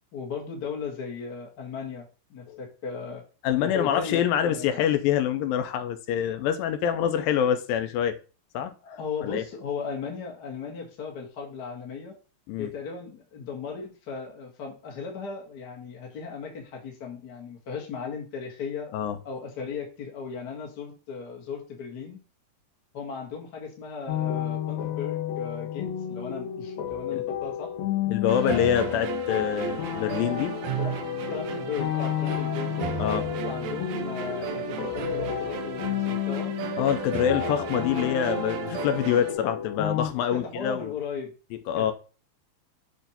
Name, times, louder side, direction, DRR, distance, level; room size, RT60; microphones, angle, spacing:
voice 1, 0.1-3.2 3.6-4.8 8.8-12.1 12.6-18.9 19.2-22.2 22.9-27.7 28.4-29.1 30.8-30.9 31.3-32.9 33.4-36.5 37.3-37.7 40.3-41.3 41.7-41.9, left 5 dB, 50° left, 1.3 m, -36 dB
voice 2, 3.4-8.2 8.5-8.7 9.2-9.4 12.5-12.7 18.9-19.2 27.1-27.2 28.1-30.5 33.0-33.3 36.8-40.9 41.7-41.9, left 9 dB, 85° left, 2.4 m, -25 dB
sound 1, 24.1-40.1, left 10 dB, 70° left, 1.9 m, -31 dB
sound 2, 28.3-39.3, right 9 dB, 85° right, 1.5 m, -34 dB
7.1 x 2.7 x 5.5 m
omnidirectional pair, 4.1 m